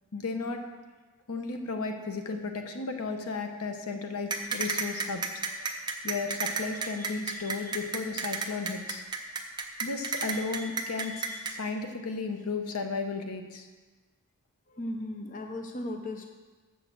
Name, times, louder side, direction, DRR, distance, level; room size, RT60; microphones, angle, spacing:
voice 1, 0.1-0.6 1.3-5.2 5.5-9.0 9.8-13.7, left 4 dB, 80° left, 5 dB, 0.9 m, -34 dB
sound 1, 4.3-11.5, right 4 dB, 20° right, 0.7 m, -31 dB
voice 2, 14.7-16.3, left 1 dB, 35° left, 4 dB, 0.6 m, -36 dB
7.4 x 6.4 x 6.9 m, 1.3 s
head